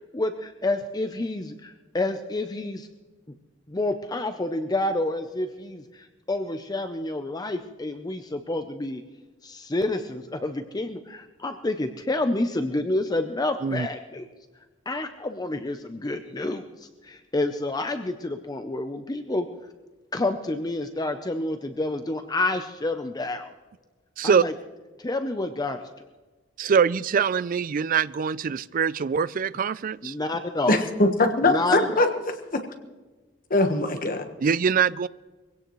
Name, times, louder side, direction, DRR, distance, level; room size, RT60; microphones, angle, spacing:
voice 1, 0.1-2.9 3.7-9.0 9.4-14.3 14.9-19.5 20.1-23.5 24.2-24.5 25.0-25.9 30.0-30.7 31.4-32.1, left 2 dB, 20° left, 7 dB, 0.6 m, -29 dB
voice 2, 26.6-30.1 34.4-35.1, right 6 dB, 45° right, 18 dB, 0.4 m, -23 dB
voice 3, 30.7-32.6 33.5-34.2, left 2 dB, 45° left, 6 dB, 1.3 m, -22 dB
22.5 x 17.0 x 3.1 m, 1.2 s
head